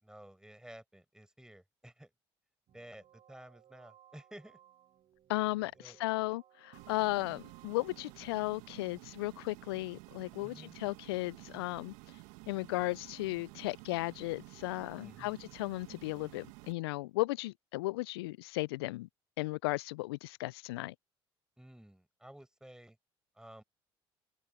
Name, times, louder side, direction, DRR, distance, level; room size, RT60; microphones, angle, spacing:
voice 1, 0.0-2.1 2.7-4.6 5.7-6.0 10.4-10.8 15.0-15.4 21.6-23.0 23.3-23.6, right 1 dB, 5° right, 5.3 m, -53 dB
sound 1, 2.7-8.1, right 11 dB, 55° right, 4.9 m, -62 dB
voice 2, 5.3-11.9 12.5-19.1 19.4-20.9, left 20 dB, 80° left, 0.4 m, -35 dB
sound 2, 6.7-16.7, right 25 dB, 70° right, 1.4 m, -52 dB
hypercardioid pair, 60°, 13 cm